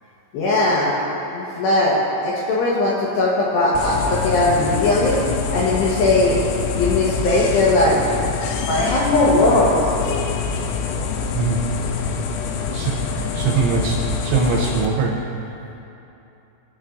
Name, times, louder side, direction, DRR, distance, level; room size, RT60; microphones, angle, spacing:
voice 1, 0.3-0.9 1.3-5.2 5.5-6.4 6.8-8.0 8.7-9.7, left 2 dB, 75° left, -5 dB, 2.8 m, -18 dB
sound 1, 3.8-14.9, left 5 dB, 90° left, 3.2 m, -25 dB
voice 2, 11.3-11.7 12.7-15.3, right 4 dB, 80° right, -2 dB, 2.7 m, -22 dB
19.0 x 7.4 x 2.5 m, 2.9 s
omnidirectional pair, 5.7 m